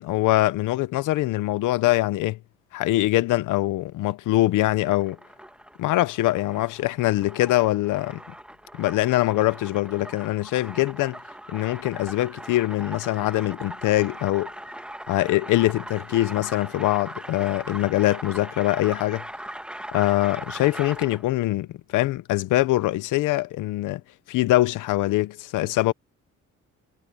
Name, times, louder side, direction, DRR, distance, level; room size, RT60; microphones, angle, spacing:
voice 1, 0.0-2.4 2.7-5.2 5.8-8.2 8.7-11.2 11.5-14.5 15.1-19.2 19.9-21.7 21.9-24.0 24.3-25.9, left 17 dB, 90° left, 0.9 m, -23 dB
sound 1, 4.7-21.3, right 1 dB, 5° right, 1.6 m, -40 dB
cardioid pair, 90°, 30 cm